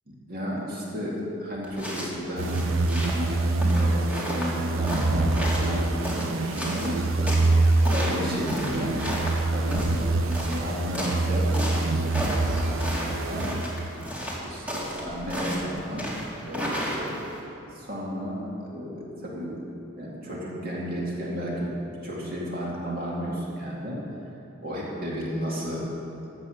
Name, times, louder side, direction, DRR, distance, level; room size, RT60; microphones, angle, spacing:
voice 1, 0.1-2.6 3.2-9.0 9.5-9.9 10.6-11.5 12.9-13.5 14.4-16.1 16.5-17.3 17.7-19.6 20.0-21.7 22.0-24.0 24.6-25.8, equal, 50° right, -5 dB, 2.3 m, -33 dB
sound 1, 1.6-17.4, equal, 5° right, 2.2 m, -33 dB
sound 2, 2.4-14.1, right 2 dB, 90° right, 0.7 m, -25 dB
15.0 x 8.0 x 6.4 m, 3.0 s
head